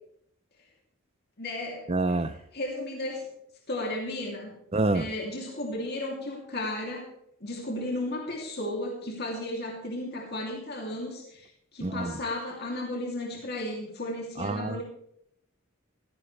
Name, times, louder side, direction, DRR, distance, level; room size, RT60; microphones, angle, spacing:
voice 1, 1.4-1.9 2.5-3.3 3.7-4.6 4.9-7.0 7.4-14.8, left 1 dB, 50° left, -1 dB, 3.0 m, -34 dB
voice 2, 1.9-2.3 4.7-5.0 11.8-12.2 14.4-14.8, right 2 dB, 30° right, 14 dB, 0.7 m, -27 dB
16.0 x 15.5 x 3.4 m, 0.73 s
head